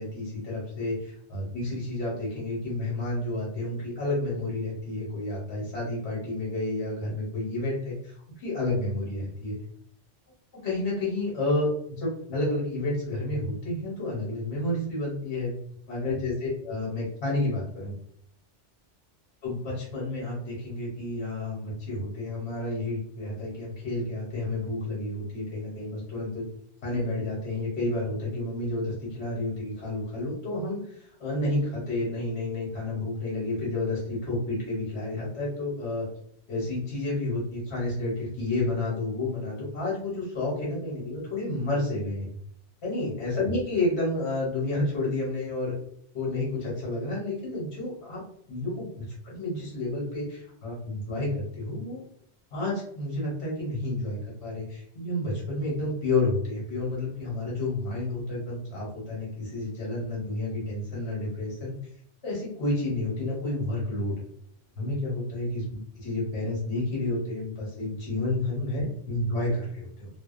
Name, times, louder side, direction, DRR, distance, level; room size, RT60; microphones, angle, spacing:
voice 1, 0.0-9.6 10.6-15.5 15.9-17.9 19.4-26.4 26.8-30.8 31.2-36.1 36.5-42.4 42.8-45.7 46.1-48.2 48.5-52.0 52.5-61.7 62.2-64.3 64.8-70.1, left 2 dB, 65° left, -5 dB, 1.3 m, -30 dB
2.4 x 2.3 x 2.4 m, 0.66 s
omnidirectional pair, 1.2 m